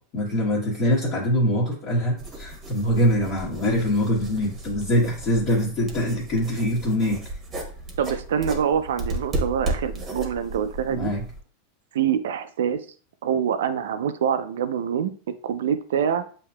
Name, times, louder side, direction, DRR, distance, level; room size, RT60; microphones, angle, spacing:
voice 1, 0.1-7.2 10.9-11.2, equal, 35° left, -7 dB, 1.2 m, -23 dB
sound 1, 2.2-11.4, right 1 dB, 25° right, 1.0 m, -34 dB
voice 2, 8.0-11.1 11.9-12.8 13.2-15.1 15.4-16.2, right 8 dB, 90° right, 11 dB, 0.4 m, -25 dB
7.3 x 2.8 x 2.2 m, 0.42 s
supercardioid pair, 145°, 0 cm